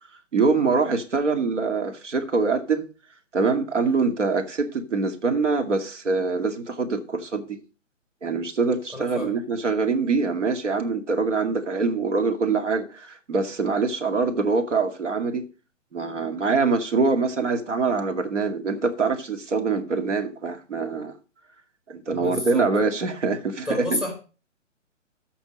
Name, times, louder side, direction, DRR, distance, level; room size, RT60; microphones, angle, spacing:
voice 1, 0.3-2.9 3.3-7.6 8.2-15.5 15.9-21.1 21.9-24.1, right 4 dB, 65° right, 2.3 m, -24 dB
voice 2, 8.9-9.3 22.1-22.7 23.7-24.1, left 2 dB, ahead, 2.1 m, -29 dB
14.0 x 5.8 x 5.2 m
figure-of-eight pair, 140°, 38 cm